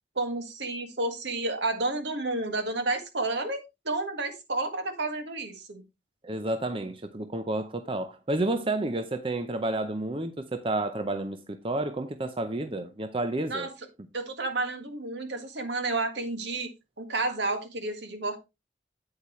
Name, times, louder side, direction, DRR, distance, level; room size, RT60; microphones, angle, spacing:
voice 1, 0.2-3.6 3.9-5.8 13.5-13.7 14.1-16.7 17.0-18.4, right 2 dB, 75° right, 1.8 m, -31 dB
voice 2, 6.2-13.7, right 2 dB, 30° right, 0.7 m, -30 dB
8.7 x 8.3 x 3.1 m
head